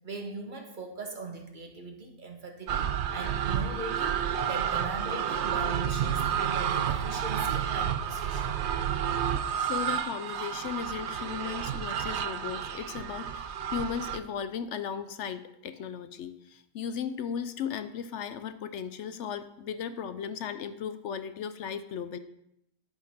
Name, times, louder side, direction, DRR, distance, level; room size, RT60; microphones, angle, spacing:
voice 1, 0.0-8.5, right 2 dB, 35° right, 3 dB, 1.3 m, -40 dB
sound 1, 2.7-14.2, right 8 dB, 60° right, 0.7 m, -30 dB
voice 2, 9.5-22.2, left 7 dB, 65° left, 11 dB, 0.7 m, -36 dB
11.5 x 6.5 x 4.2 m, 0.81 s
omnidirectional pair, 1.6 m